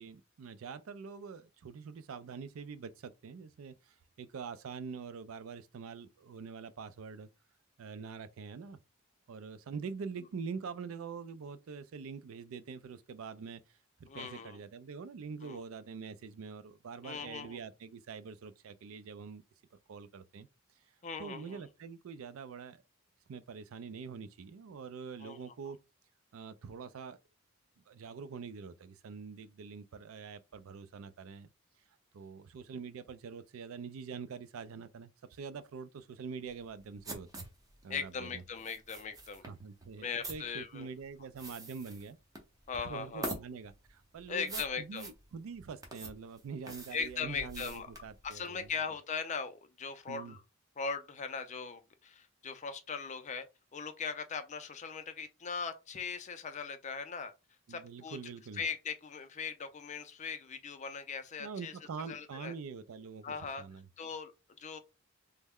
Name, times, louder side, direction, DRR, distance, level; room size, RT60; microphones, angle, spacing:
voice 1, 0.0-7.3 7.8-8.8 9.3-19.4 19.9-20.5 21.2-22.8 23.3-25.8 26.3-27.2 27.9-31.5 32.1-37.5 37.8-38.4 39.4-42.2 42.8-48.7 50.1-50.4 57.7-58.6 61.4-63.9, right 5 dB, 80° right, 0.4 m, -45 dB
voice 2, 14.1-14.6 15.4-15.6 17.0-17.6 21.0-21.6 25.2-25.4 37.9-39.4 40.0-40.9 42.7-43.4 44.3-45.1 46.9-47.9 48.2-50.4 50.8-53.5 53.7-57.3 57.7-58.2 58.5-61.7 62.1-62.5 63.2-63.6 64.0-64.3 64.6-64.8, left 5 dB, 35° left, 0.4 m, -39 dB
sound 1, 36.5-48.7, right 1 dB, 15° right, 0.7 m, -46 dB
3.2 x 2.1 x 3.5 m
head